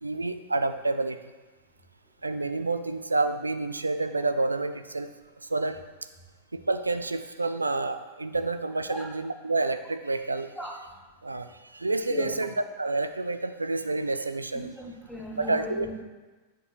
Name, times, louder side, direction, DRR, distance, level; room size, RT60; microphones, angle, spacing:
voice 1, 0.0-1.2 2.2-5.1 5.5-5.8 6.5-10.5 11.2-14.7 15.4-15.9, right 3 dB, 80° right, 10 dB, 0.3 m, -29 dB
voice 2, 14.5-16.0, left 1 dB, 5° left, -2 dB, 1.4 m, -37 dB
8.0 x 6.3 x 2.8 m, 1.2 s
figure-of-eight pair, 90°, 0 cm